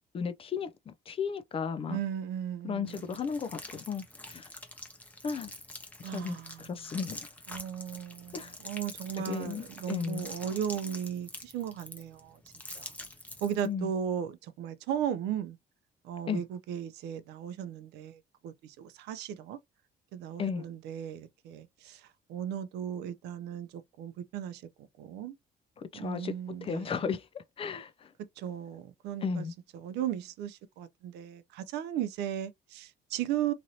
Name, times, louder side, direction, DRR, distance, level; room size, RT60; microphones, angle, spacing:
voice 1, 0.0-2.0 2.6-4.5 5.2-5.5 6.1-7.2 8.3-8.5 9.3-10.3 13.6-13.9 16.3-16.4 20.4-20.6 25.8-28.1 29.2-29.5, left 6 dB, 35° left, 0.4 m, -35 dB
voice 2, 1.9-3.2 6.0-6.9 7.5-12.4 12.7-12.9 13.4-15.6 16.0-19.6 20.1-25.4 25.9-26.9 28.4-29.5 29.7-33.5, right 9 dB, 80° right, 0.5 m, -36 dB
sound 1, 2.9-13.7, left 1 dB, 10° left, 0.7 m, -46 dB
3.0 x 2.6 x 2.7 m
cardioid pair, 110°, 17 cm